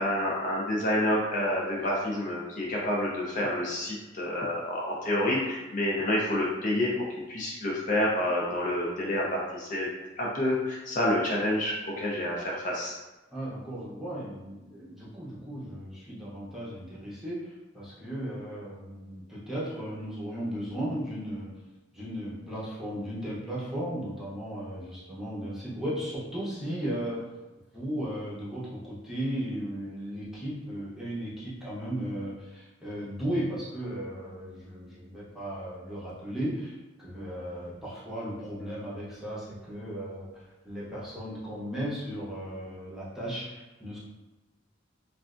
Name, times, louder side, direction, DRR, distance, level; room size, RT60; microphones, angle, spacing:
voice 1, 0.0-7.0 7.3-9.9 10.2-13.0, left 1 dB, 45° left, -4 dB, 0.6 m, -28 dB
voice 2, 13.3-21.5 21.9-27.3 27.7-44.0, equal, ahead, -8 dB, 0.8 m, -36 dB
3.2 x 2.4 x 2.4 m, 1.1 s
head